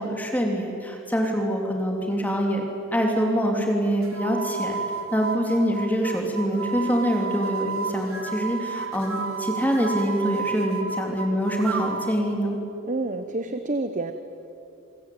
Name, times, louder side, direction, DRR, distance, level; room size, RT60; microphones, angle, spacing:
voice 1, 0.0-2.6 2.9-4.8 5.1-12.6, equal, 10° left, 1 dB, 2.9 m, -25 dB
sound 1, 4.0-12.2, right 5 dB, 85° right, 2.4 m, -32 dB
voice 2, 12.8-14.1, right 2 dB, 40° right, 8 dB, 1.0 m, -28 dB
26.5 x 22.5 x 9.2 m, 2.7 s
head